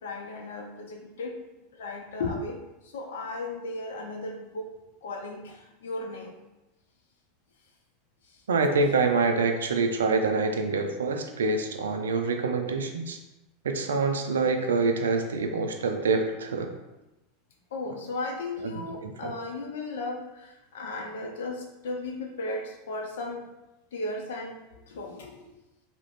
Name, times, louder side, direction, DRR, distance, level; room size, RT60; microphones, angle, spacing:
voice 1, 0.0-1.4 1.7-4.8 5.0-6.4 8.3-8.4 17.7-23.5 23.9-25.5, left 2 dB, 80° left, 2 dB, 0.4 m, -36 dB
voice 2, 8.5-13.2 13.6-16.7 18.6-19.3, right 4 dB, 85° right, 5 dB, 0.3 m, -26 dB
2.4 x 2.0 x 3.0 m, 0.98 s
hypercardioid pair, 100°, 0 cm